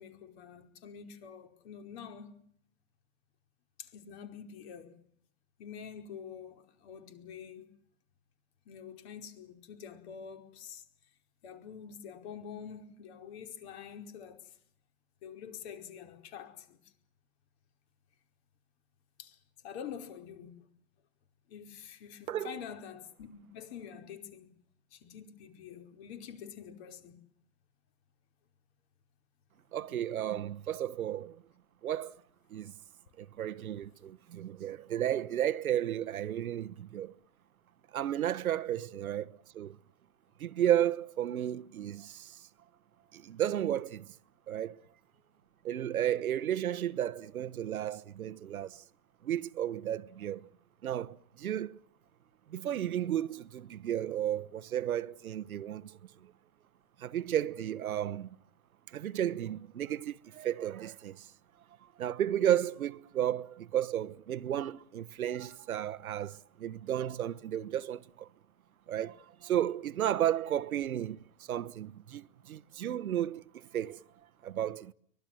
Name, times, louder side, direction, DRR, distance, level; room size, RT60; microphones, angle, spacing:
voice 1, 0.0-2.3 3.8-5.0 5.6-7.7 8.6-10.8 11.4-14.5 15.2-16.8 19.2-19.4 19.6-20.6 21.5-24.6 24.9-27.2, left 8 dB, 50° left, 5.0 m, -46 dB
voice 2, 22.3-22.6 29.7-31.4 31.8-32.2 32.5-32.7 33.2-37.1 37.9-39.8 40.4-42.3 43.1-44.1 44.5-44.8 45.6-48.8 49.2-50.5 50.8-51.8 52.5-56.0 57.0-58.3 58.9-61.2 62.0-68.3 68.9-74.0 74.4-74.9, right 11 dB, 80° right, 1.2 m, -33 dB
24.0 x 21.5 x 7.7 m
hypercardioid pair, 140°, 42 cm